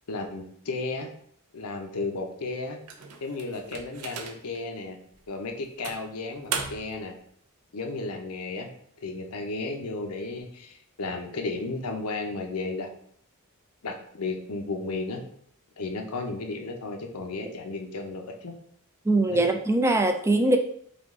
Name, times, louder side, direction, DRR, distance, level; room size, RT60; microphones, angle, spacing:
voice 1, 0.1-1.1 1.5-2.8 3.2-5.0 5.3-7.1 7.7-8.7 9.0-12.9 13.8-15.2 15.8-18.5 19.3-19.4, left 3 dB, 80° left, 4 dB, 0.7 m, -34 dB
sound 1, 2.9-4.6 5.1-5.3 5.8-7.0, right 5 dB, 85° right, 0.6 m, -36 dB
voice 2, 19.1-20.6, right 2 dB, 10° right, 5 dB, 0.3 m, -22 dB
5.1 x 2.4 x 3.6 m, 0.64 s
head